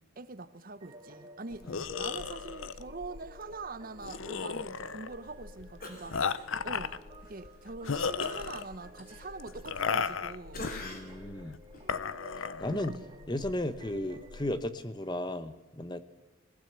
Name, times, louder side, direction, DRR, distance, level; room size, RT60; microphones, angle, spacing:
voice 1, 0.2-6.2 6.6-10.7 12.7-13.0, right 3 dB, 40° right, 0.8 m, -44 dB
sound 1, 0.8-14.5, right 1 dB, 20° right, 2.2 m, -53 dB
sound 2, 1.5-14.6, left 6 dB, 70° left, 0.7 m, -36 dB
Cough, 5.8-6.8 7.2-7.4 8.2-10.2 10.5-11.2 11.7-11.9, left 1 dB, 40° left, 3.2 m, -45 dB
voice 2, 10.8-11.6 12.6-13.0 13.3-16.0, left 1 dB, 20° left, 0.9 m, -34 dB
20.5 x 15.5 x 8.1 m
head